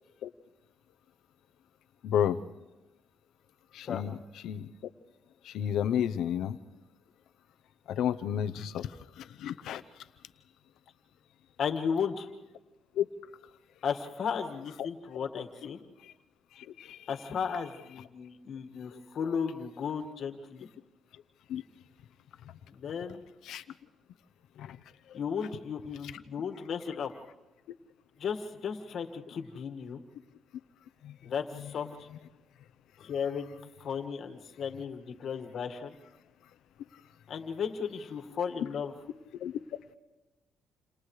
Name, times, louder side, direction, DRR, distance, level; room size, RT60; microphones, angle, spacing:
voice 1, 2.0-2.4 3.7-4.1 4.4-4.7 5.5-6.6 7.9-8.9 9.2-9.8 13.0-13.1 16.8-17.0 21.5-21.6 23.5-23.6 24.6-24.8 31.0-31.1 39.4-39.5, left 9 dB, 80° left, 9 dB, 0.8 m, -31 dB
voice 2, 11.6-12.3 13.8-15.8 17.1-20.7 22.7-23.2 25.1-27.1 28.2-30.0 31.2-32.1 33.0-35.9 37.3-38.9, left 6 dB, 60° left, 4 dB, 1.8 m, -35 dB
29.5 x 27.0 x 3.3 m, 1.1 s
cardioid pair, 90°, 0 cm